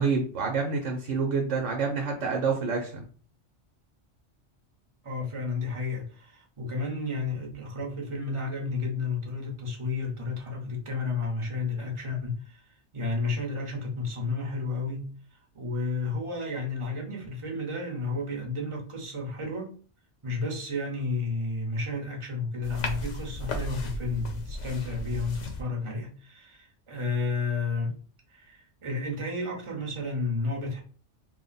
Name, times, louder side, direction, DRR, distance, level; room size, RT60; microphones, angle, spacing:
voice 1, 0.0-3.1, right 5 dB, 80° right, 1.0 m, -27 dB
voice 2, 5.0-15.1 15.5-19.7 20.2-28.0 28.3-30.8, left 3 dB, 30° right, 0.8 m, -32 dB
sound 1, 22.6-25.6, left 1 dB, 80° left, 1.0 m, -35 dB
3.2 x 2.1 x 3.9 m
omnidirectional pair, 1.2 m